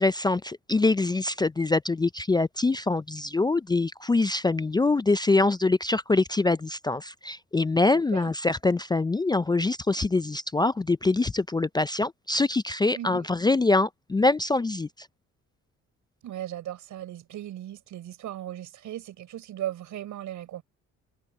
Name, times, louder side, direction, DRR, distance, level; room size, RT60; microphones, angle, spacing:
voice 1, 0.0-15.1, left 3 dB, 15° left, 0.4 m, -24 dB
voice 2, 7.9-8.3 12.9-13.3 16.2-20.6, right 12 dB, 80° right, 6.0 m, -37 dB
cardioid pair, 90°, 30 cm